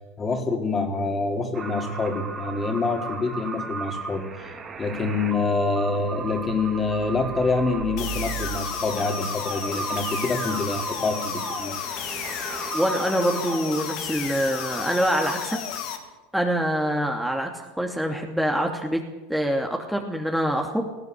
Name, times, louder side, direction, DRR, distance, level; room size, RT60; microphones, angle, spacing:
voice 1, 0.2-11.7, left 3 dB, 25° left, 4 dB, 4.0 m, -26 dB
sound 1, 1.5-13.6, right 5 dB, 30° right, 3.9 m, -35 dB
sound 2, 8.0-16.0, left 8 dB, 55° left, 3.1 m, -33 dB
voice 2, 12.7-15.6 16.3-19.0 19.3-20.9, equal, 5° right, 2 dB, 2.7 m, -25 dB
19.5 x 16.0 x 8.3 m, 1.2 s
hypercardioid pair, 80°, 0 cm